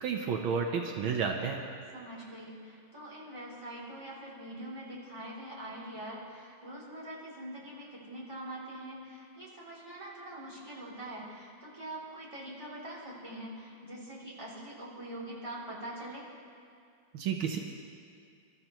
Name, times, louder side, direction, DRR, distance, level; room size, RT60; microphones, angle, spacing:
voice 1, 0.0-1.6 17.1-17.6, right 6 dB, 75° right, 2 dB, 1.7 m, -31 dB
voice 2, 1.9-16.3, right 1 dB, 15° right, -7 dB, 3.0 m, -44 dB
25.0 x 13.0 x 3.0 m, 2.4 s
omnidirectional pair, 2.3 m